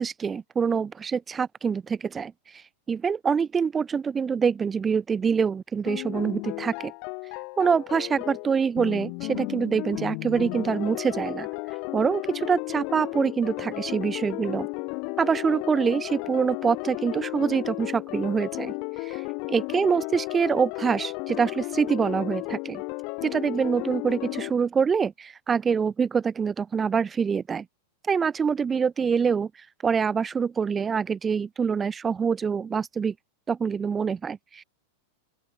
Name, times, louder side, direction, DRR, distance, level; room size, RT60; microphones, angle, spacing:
voice 1, 0.0-2.3 2.9-6.9 7.6-11.5 11.9-14.7 15.2-18.7 19.5-22.8 23.2-27.6 28.1-29.5 29.8-33.1 33.5-34.6, right 6 dB, 20° right, 1.7 m, -25 dB
sound 1, 5.9-24.5, left 34 dB, 45° left, 1.2 m, -34 dB
open air
figure-of-eight pair, 90°, 0 cm